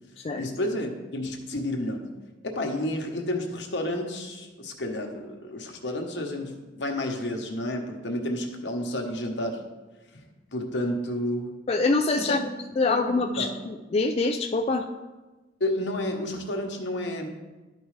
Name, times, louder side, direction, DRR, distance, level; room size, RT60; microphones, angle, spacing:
voice 1, 0.4-2.0 2.4-9.6 10.5-11.5 12.2-12.4 12.8-13.5 15.6-17.3, left 1 dB, 75° left, 2 dB, 1.1 m, -30 dB
voice 2, 11.7-12.4 12.8-14.9, left 3 dB, 35° left, 4 dB, 0.3 m, -25 dB
12.0 x 4.7 x 3.2 m, 1.2 s
head